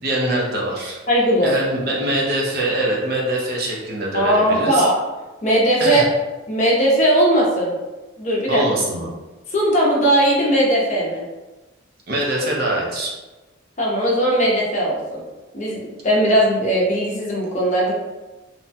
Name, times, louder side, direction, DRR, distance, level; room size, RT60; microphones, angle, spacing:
voice 1, 0.0-1.0 1.4-4.8 5.8-6.0 8.5-9.1 12.1-13.1, right 1 dB, 50° right, -3 dB, 0.6 m, -23 dB
voice 2, 1.1-1.5 4.1-4.9 5.4-6.0 6.5-7.7 8.2-8.6 9.5-11.2 13.8-15.2 15.5-17.9, right 1 dB, 35° left, -3 dB, 0.6 m, -18 dB
3.0 x 2.2 x 2.7 m, 1.1 s
head